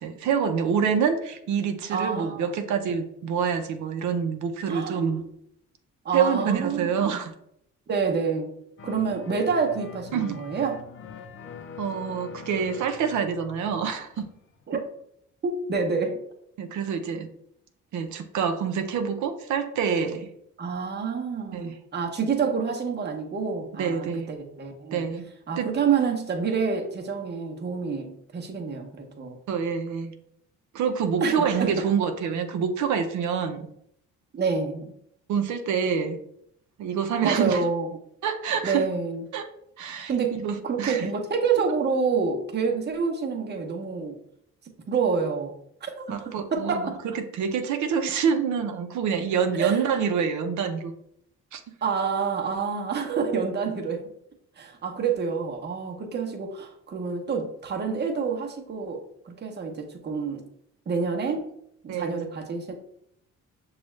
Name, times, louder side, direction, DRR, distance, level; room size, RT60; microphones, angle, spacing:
voice 1, 0.0-5.2 6.1-7.3 10.1-10.4 11.8-14.3 16.6-17.3 17.9-20.3 21.5-21.8 23.8-24.3 24.9-25.3 25.6-25.8 29.5-30.1 30.7-33.7 35.3-36.2 36.8-37.7 38.2-38.9 39.3-39.5 39.8-41.1 46.1-50.9 51.5-51.6 61.9-62.3, right 6 dB, 70° right, 6 dB, 0.6 m, -26 dB
voice 2, 1.9-2.6 4.7-5.0 6.0-7.2 7.9-8.5 8.8-10.8 14.7-14.8 15.4-16.2 20.6-25.1 25.5-29.4 31.2-31.7 34.3-34.9 37.2-37.9 38.6-39.2 40.1-40.4 40.6-44.2 44.9-45.5 45.8-47.0 49.6-49.8 51.8-54.1 54.6-60.4 60.9-61.4 61.8-62.8, right 5 dB, 35° right, 2 dB, 0.8 m, -28 dB
sound 1, 8.8-14.3 14.6-14.7, left 6 dB, 45° left, 0.6 m, -43 dB
6.0 x 2.4 x 3.1 m, 0.73 s
cardioid pair, 90°, 30 cm